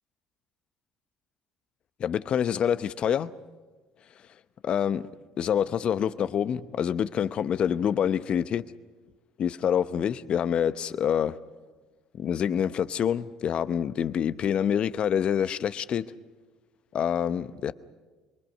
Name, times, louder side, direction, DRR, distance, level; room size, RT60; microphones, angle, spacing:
voice 1, 2.0-3.3 4.6-5.1 5.4-8.6 9.4-11.4 12.2-16.1 16.9-17.7, left 8 dB, 50° left, 0.9 m, -26 dB
25.0 x 22.5 x 6.6 m
hypercardioid pair, 65°, 2 cm